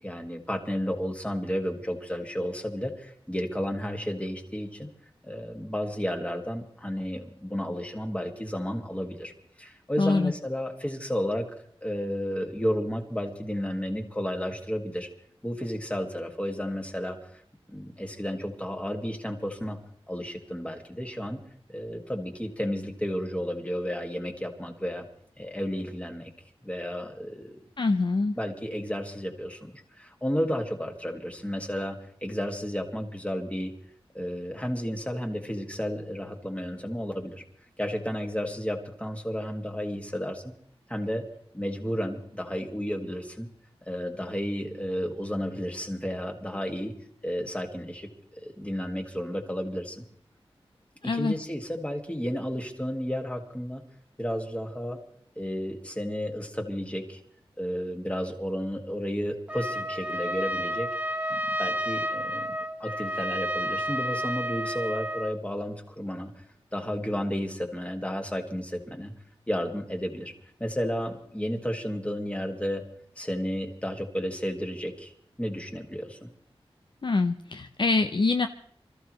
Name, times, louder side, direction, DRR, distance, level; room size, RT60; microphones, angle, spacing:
voice 1, 0.0-4.9 5.2-9.3 9.6-11.5 11.8-15.1 15.4-17.4 17.7-19.8 20.1-21.4 21.7-25.1 25.4-26.3 26.6-27.6 28.4-33.7 34.1-37.4 37.8-40.5 40.9-41.2 41.5-43.5 43.9-46.9 47.2-48.1 48.4-50.0 51.1-53.8 54.2-55.0 55.4-57.2 57.6-60.9 61.3-62.5 62.8-66.3 66.7-69.1 69.5-70.3 70.6-72.8 73.2-75.1 75.4-76.3, equal, 10° left, 3 dB, 1.9 m, -32 dB
voice 2, 10.0-10.3 27.8-28.3 51.0-51.3 77.0-78.5, left 3 dB, 50° left, 7 dB, 0.6 m, -24 dB
Trumpet, 59.5-65.4, equal, 15° right, 1.1 m, -31 dB
26.0 x 14.0 x 3.1 m, 0.63 s
wide cardioid pair, 85°, 10 cm